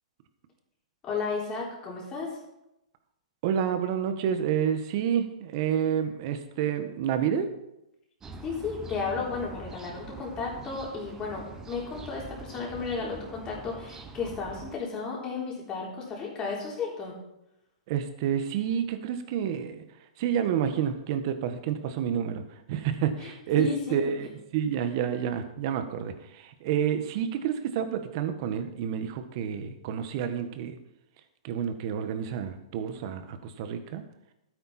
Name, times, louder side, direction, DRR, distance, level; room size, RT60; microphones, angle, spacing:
voice 1, 1.0-2.3 8.4-17.1 23.2-23.3 23.6-24.1, left 4 dB, 20° left, -3 dB, 3.9 m, -33 dB
voice 2, 3.4-7.5 17.9-19.8 20.2-22.4 22.7-30.8 31.4-34.0, right 8 dB, 45° right, 9 dB, 1.3 m, -29 dB
sound 1, 8.2-14.8, right 3 dB, 15° right, 1.0 m, -44 dB
12.0 x 9.5 x 4.3 m, 0.88 s
hypercardioid pair, 150°, 4 cm